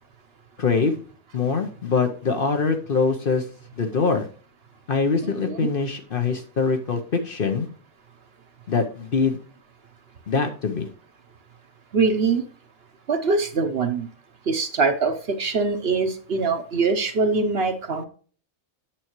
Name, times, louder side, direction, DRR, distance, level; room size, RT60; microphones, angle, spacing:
voice 1, 0.6-1.0 1.3-3.5 3.8-4.3 4.9-7.7 8.7-9.4 10.3-10.9, left 4 dB, 50° left, 6 dB, 0.9 m, -23 dB
voice 2, 5.2-5.7 11.9-12.4 13.1-14.1 14.5-18.0, right 4 dB, 55° right, 8 dB, 0.9 m, -23 dB
8.8 x 6.9 x 3.0 m, 0.41 s
omnidirectional pair, 1.4 m